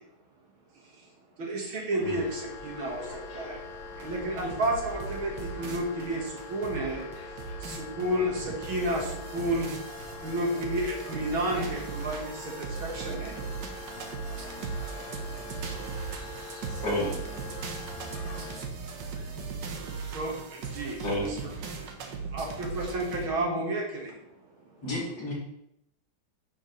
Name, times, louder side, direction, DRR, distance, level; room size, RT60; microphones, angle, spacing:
voice 1, 1.4-3.0 3.3-3.5 4.0-5.3 5.6-6.2 6.5-7.0 8.0-9.0 9.3-9.7 10.2-12.2 12.9-13.3 20.1-20.3 20.8-21.4 22.3-24.1, right 1 dB, 85° right, -1 dB, 2.6 m, -30 dB
sound 1, 2.0-18.6, left 3 dB, 90° left, 2.6 m, -43 dB
sound 2, 4.0-23.3, right 5 dB, 65° right, 1.6 m, -38 dB
voice 2, 13.6-16.8 17.6-19.6, equal, 45° right, -6 dB, 3.5 m, -58 dB
voice 3, 16.8-17.2 21.0-21.3 24.8-25.3, left 1 dB, 50° left, -7 dB, 4.0 m, -30 dB
10.0 x 6.6 x 3.3 m, 0.78 s
omnidirectional pair, 2.2 m